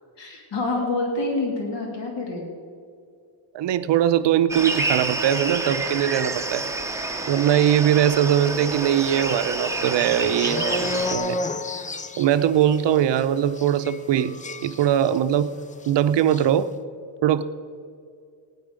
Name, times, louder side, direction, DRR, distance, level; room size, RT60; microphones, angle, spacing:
voice 1, 0.2-2.5, left 2 dB, 60° left, 0 dB, 2.7 m, -27 dB
voice 2, 3.5-6.6 7.3-11.4 12.2-14.4 14.6-15.5 15.9-16.7 17.2-17.4, right 10 dB, 60° right, 12 dB, 0.7 m, -21 dB
sound 1, 4.5-11.1, right 2 dB, 5° right, 0.8 m, -28 dB
sound 2, 8.7-15.4 15.7-15.9 16.2-16.5, left 3 dB, 20° left, 0.3 m, -33 dB
17.0 x 10.0 x 5.1 m, 2.3 s
cardioid pair, 150°, 48 cm